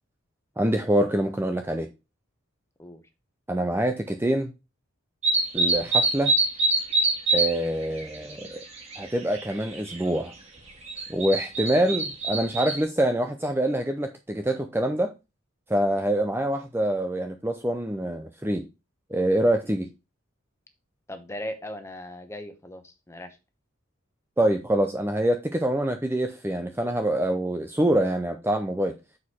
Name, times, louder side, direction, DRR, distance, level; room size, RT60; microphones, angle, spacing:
voice 1, 0.6-1.9 3.5-4.5 5.5-6.3 7.3-8.6 9.0-10.3 11.1-15.1 15.7-18.6 19.1-19.9 24.4-28.9, right 1 dB, 10° right, 0.5 m, -25 dB
sound 1, 5.2-7.5 7.8-9.0 9.4-10.0 10.8-12.8, right 2 dB, 30° right, 1.8 m, -24 dB
voice 2, 21.1-23.4, left 1 dB, 15° left, 1.0 m, -38 dB
6.4 x 4.8 x 5.5 m
head